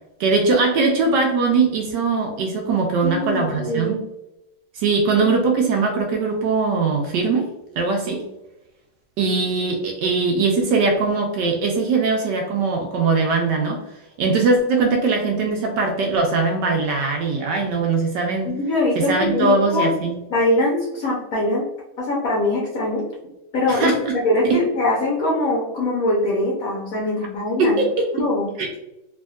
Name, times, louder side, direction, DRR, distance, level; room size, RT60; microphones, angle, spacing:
voice 1, 0.2-4.0 4.7-7.5 7.8-8.2 9.2-13.8 14.2-18.5 18.9-20.2 23.7-24.1 27.6-28.3 28.6-28.7, right 4 dB, 75° right, 2 dB, 1.0 m, -21 dB
voice 2, 3.0-4.0 5.2-5.3 18.4-19.9 20.3-21.6 22.0-23.0 23.5-23.9 24.2-27.8 28.2-28.5, left 2 dB, 65° left, -4 dB, 0.9 m, -22 dB
3.4 x 2.8 x 2.3 m, 0.93 s
omnidirectional pair, 2.2 m